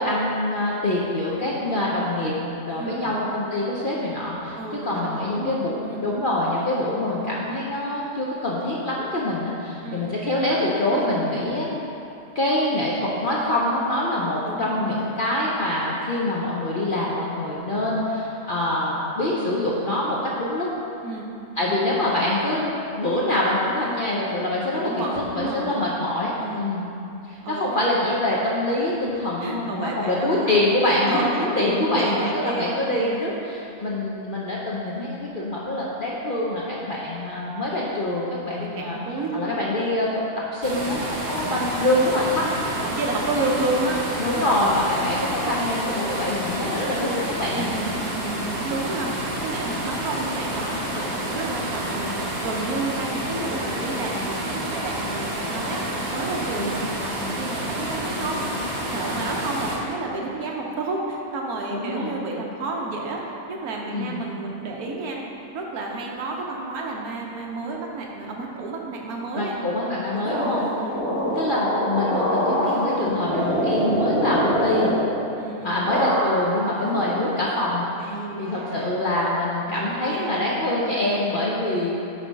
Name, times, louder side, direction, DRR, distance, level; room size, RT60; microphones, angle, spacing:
voice 1, 0.0-2.3 2.7-4.6 4.8-11.7 12.3-20.7 21.6-25.0 25.3-26.8 27.2-39.0 39.3-40.1 40.5-42.4 43.3-43.6 44.2-47.7 56.6-56.7 61.7-62.1 63.9-64.2 69.3-70.7 71.4-74.9 75.6-78.1 78.4-81.9, left 1 dB, 50° left, -5 dB, 0.6 m, -25 dB
voice 2, 4.6-6.1 9.8-10.1 10.9-11.3 14.5-15.1 21.0-21.3 21.6-21.8 24.7-25.9 26.4-26.7 27.4-27.7 29.4-30.6 31.0-33.3 38.4-39.6 40.1-40.3 42.1-42.6 42.8-44.1 47.5-49.2 49.4-55.8 56.1-58.5 58.9-63.2 63.5-65.2 65.5-69.5 70.1-71.1 75.3-75.8 78.0-79.0 79.7-80.4, right 3 dB, 75° right, -1 dB, 1.3 m, -31 dB
sound 1, 40.6-59.8, right 1 dB, 35° right, 0.8 m, -29 dB
sound 2, 70.2-75.5 75.8-76.6 76.9-77.8, equal, 70° left, 2.3 m, -25 dB
8.4 x 3.4 x 5.1 m, 2.8 s
omnidirectional pair, 1.6 m